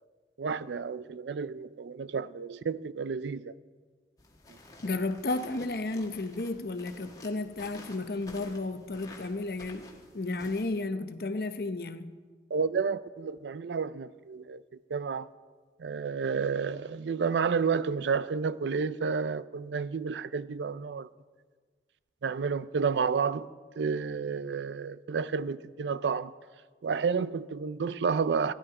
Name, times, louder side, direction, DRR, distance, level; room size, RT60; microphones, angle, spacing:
voice 1, 0.4-3.5 12.5-14.6 14.9-15.3 15.8-21.1 22.2-23.5 23.8-26.3 26.8-28.5, right 5 dB, 85° right, 0.4 m, -30 dB
sound 1, 4.2-10.6, left 2 dB, 20° left, 1.5 m, -51 dB
voice 2, 4.8-12.1, left 2 dB, 55° left, 0.7 m, -33 dB
15.5 x 11.0 x 4.8 m
head